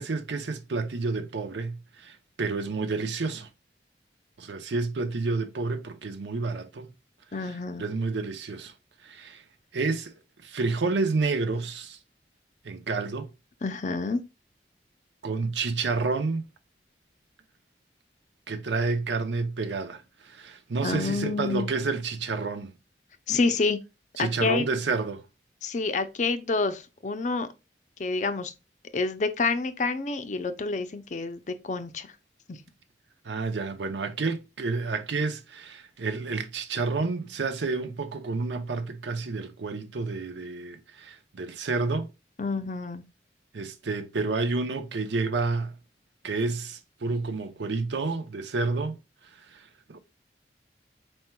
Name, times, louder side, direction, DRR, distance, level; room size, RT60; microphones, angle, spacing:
voice 1, 0.0-3.5 4.4-6.9 7.4-8.7 9.0-9.4 9.7-12.0 12.6-13.3 15.2-16.4 18.5-22.7 24.2-25.2 33.2-42.1 43.5-45.8 46.2-49.0 49.4-49.6 49.9-50.0, right 3 dB, 85° right, 0.6 m, -30 dB
voice 2, 7.3-7.9 13.6-14.2 20.8-21.7 23.3-23.8 24.2-24.7 25.6-27.5 28.0-28.5 28.9-32.1 32.5-32.6 42.4-43.0, left 3 dB, 45° left, 0.5 m, -28 dB
4.5 x 4.4 x 2.2 m
head